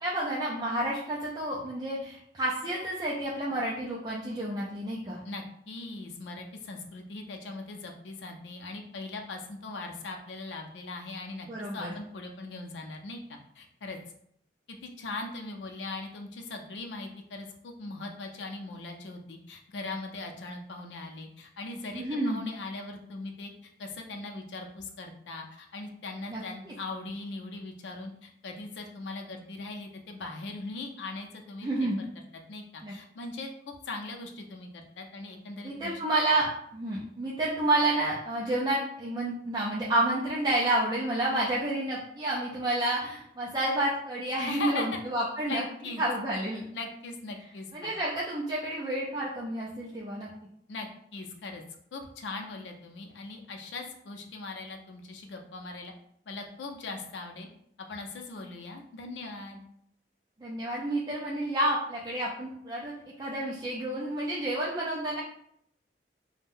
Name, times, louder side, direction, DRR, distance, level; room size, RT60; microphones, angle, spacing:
voice 1, 0.0-5.2 11.5-11.9 21.9-22.4 26.3-26.4 26.7-26.8 31.6-32.0 32.8-32.9 35.6-45.6 46.0-46.6 47.7-50.3 60.4-65.2, right 1 dB, 25° right, -5 dB, 0.3 m, -30 dB
voice 2, 5.2-11.5 11.7-14.0 14.7-23.5 23.8-32.1 32.5-35.9 44.5-45.0 45.5-46.0 46.7-47.9 50.7-51.6 51.9-55.9 56.3-57.5 57.9-59.6, left 3 dB, 90° left, 3 dB, 0.5 m, -40 dB
2.6 x 2.1 x 3.5 m, 0.71 s
head